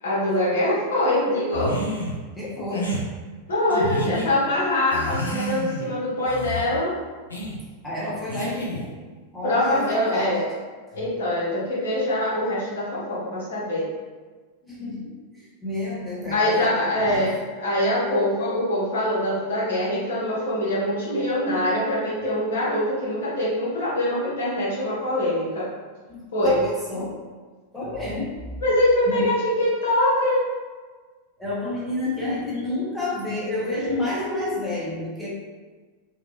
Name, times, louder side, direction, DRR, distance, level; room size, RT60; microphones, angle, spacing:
voice 1, 0.0-1.8 3.5-6.9 9.4-10.4 10.9-13.9 16.3-17.3 17.6-25.7 26.3-26.6 28.6-30.4, left 1 dB, 65° left, -7 dB, 0.9 m, -23 dB
sound 1, 1.5-2.2 2.7-3.0 3.7-4.3 4.9-5.9 6.3-6.7 7.3-7.6 8.3-8.9, equal, 80° left, 0.4 m, -29 dB
voice 2, 2.3-3.0 7.8-8.9 9.3-10.4 14.7-17.3 26.4-27.2 27.7-28.6 29.1-29.3 31.4-35.3, left 2 dB, 5° left, -8 dB, 0.8 m, -29 dB
2.9 x 2.2 x 2.5 m, 1.4 s
figure-of-eight pair, 90°, 0 cm